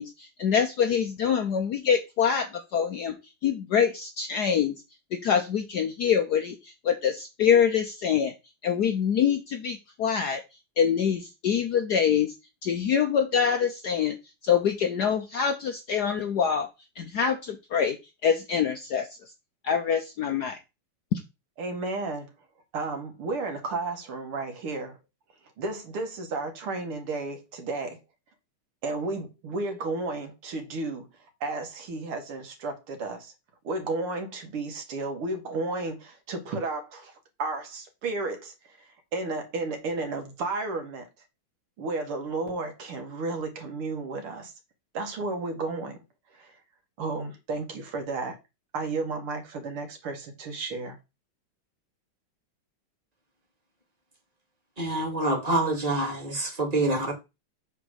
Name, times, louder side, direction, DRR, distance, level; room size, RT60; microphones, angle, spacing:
voice 1, 0.0-3.1 3.4-4.8 5.1-8.3 8.6-10.4 10.8-12.3 12.6-14.2 14.4-16.7 17.0-18.0 18.2-19.1 19.6-20.6 21.1-21.2, left 7 dB, 65° left, 1.0 m, -25 dB
voice 2, 21.6-22.3 22.7-25.0 25.6-28.0 28.8-31.1 31.4-33.3 33.6-41.1 41.8-44.5 44.9-46.0 46.3-46.6 47.0-48.4 48.7-51.0, right 3 dB, 80° right, 2.5 m, -33 dB
voice 3, 54.8-57.1, right 2 dB, 20° right, 1.9 m, -26 dB
8.0 x 3.5 x 6.3 m
omnidirectional pair, 2.4 m